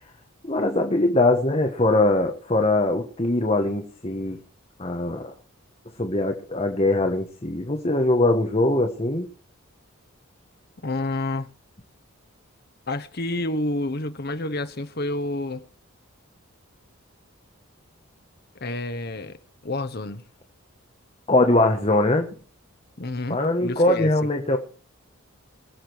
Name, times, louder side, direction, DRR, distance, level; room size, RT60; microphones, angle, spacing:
voice 1, 0.4-4.4 4.8-5.3 6.0-9.3 21.3-22.3 23.3-24.6, left 2 dB, 30° left, 1.3 m, -22 dB
voice 2, 10.8-11.5 12.9-15.6 18.6-19.4 19.6-20.2 23.0-24.1, left 2 dB, 45° left, 1.1 m, -29 dB
22.5 x 7.5 x 4.7 m
head